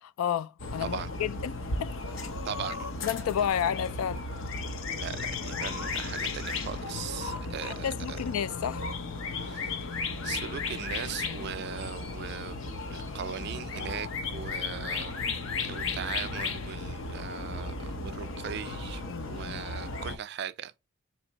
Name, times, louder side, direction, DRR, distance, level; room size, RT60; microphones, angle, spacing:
voice 1, 0.0-1.5 1.8-2.0 3.0-4.3 7.6-8.9 19.1-19.5, left 9 dB, 85° left, 0.3 m, -31 dB
sound 1, 0.6-20.2, left 3 dB, 65° left, 0.7 m, -35 dB
voice 2, 2.4-2.9 5.0-8.2 9.4-9.9 10.2-12.6 12.9-15.2 15.6-20.8, right 8 dB, 50° right, 0.3 m, -39 dB
4.3 x 3.1 x 2.8 m
head